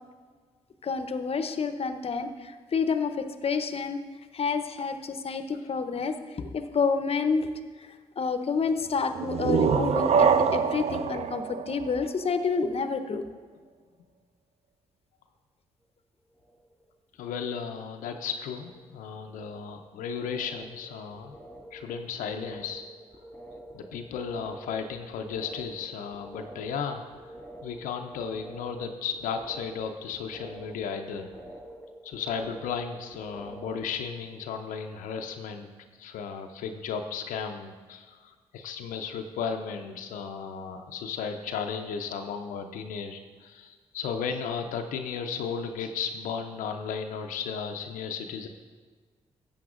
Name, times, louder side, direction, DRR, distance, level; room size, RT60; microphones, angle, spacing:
voice 1, 0.8-4.0 4.3-7.5 8.2-13.2, left 5 dB, 45° left, 9 dB, 0.8 m, -29 dB
sound 1, 9.1-12.7, right 6 dB, 50° right, 0.5 m, -25 dB
sound 2, 16.3-16.9 17.1-17.9 18.1-33.9, right 1 dB, 10° left, 2.0 m, -47 dB
voice 2, 17.2-21.4 21.7-22.8 23.7-27.0 27.6-31.3 32.0-35.7 36.0-48.5, left 6 dB, 80° left, 5 dB, 0.6 m, -34 dB
13.5 x 8.5 x 2.5 m, 1.5 s
hypercardioid pair, 45°, 14 cm